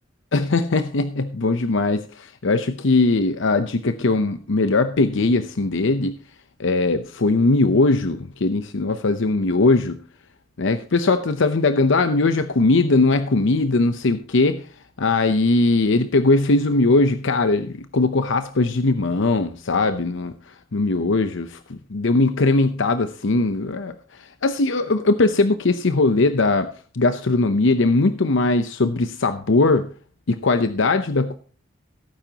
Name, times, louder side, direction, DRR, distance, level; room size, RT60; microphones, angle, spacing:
voice 1, 0.3-6.2 6.6-10.0 10.6-14.6 15.0-26.7 26.9-29.9 30.3-31.3, left 3 dB, 65° left, 10 dB, 0.8 m, -20 dB
16.5 x 9.1 x 2.9 m, 0.41 s
head